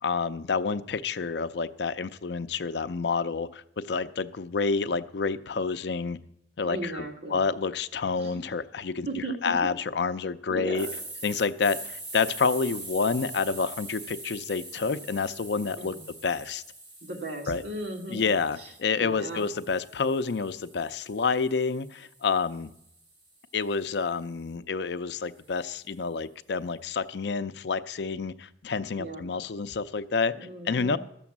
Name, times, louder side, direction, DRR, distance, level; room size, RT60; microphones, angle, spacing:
voice 1, 0.0-6.2 6.6-10.9 11.2-15.9 16.2-16.6 17.5-17.6 18.1-22.7 23.5-30.3 30.6-31.0, left 5 dB, 75° left, 13 dB, 0.5 m, -29 dB
voice 2, 6.7-7.4 8.2-8.4 9.1-9.3 9.6-9.7 10.5-10.9 15.8-16.0 17.0-18.3 19.0-19.4 29.0-29.2 30.3-31.0, right 2 dB, 75° right, 1 dB, 2.0 m, -36 dB
sound 1, 10.7-18.8 19.3-23.5, right 2 dB, 45° right, 3.5 m, -43 dB
12.0 x 7.0 x 7.2 m, 0.77 s
head